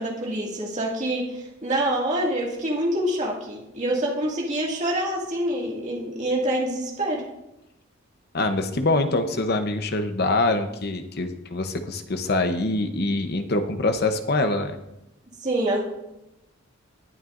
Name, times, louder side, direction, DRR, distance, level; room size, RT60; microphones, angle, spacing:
voice 1, 0.0-7.3 15.4-15.8, right 1 dB, 35° right, -3 dB, 2.2 m, -26 dB
voice 2, 8.3-14.8, left 2 dB, 50° left, 7 dB, 0.8 m, -24 dB
18.5 x 8.8 x 2.6 m, 0.90 s
head